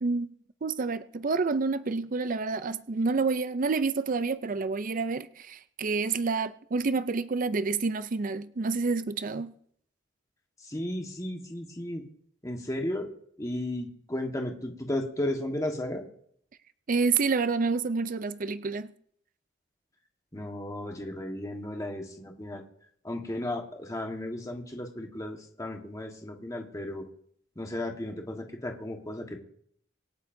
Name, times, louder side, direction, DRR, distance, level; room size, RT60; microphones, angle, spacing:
voice 1, 0.0-0.3 0.6-9.6 16.9-18.9, right 4 dB, 45° right, 0.5 m, -28 dB
voice 2, 10.6-12.1 12.4-13.1 13.4-16.1 20.3-22.6 23.0-27.1 27.5-29.4, left 1 dB, 20° left, 1.5 m, -34 dB
25.5 x 9.4 x 2.7 m
head